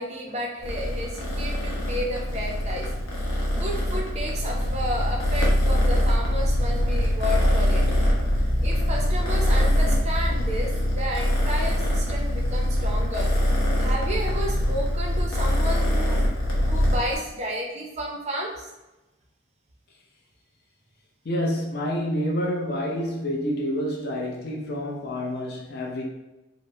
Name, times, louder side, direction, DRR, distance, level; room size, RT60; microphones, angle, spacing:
voice 1, 0.0-2.9 3.5-7.8 8.6-13.3 13.8-18.7, equal, 30° right, 0 dB, 0.5 m, -32 dB
Purr, 0.6-17.2, equal, 85° left, 0.8 m, -23 dB
voice 2, 21.2-26.0, equal, 50° left, 0 dB, 0.5 m, -28 dB
2.9 x 2.0 x 2.6 m, 1.0 s
head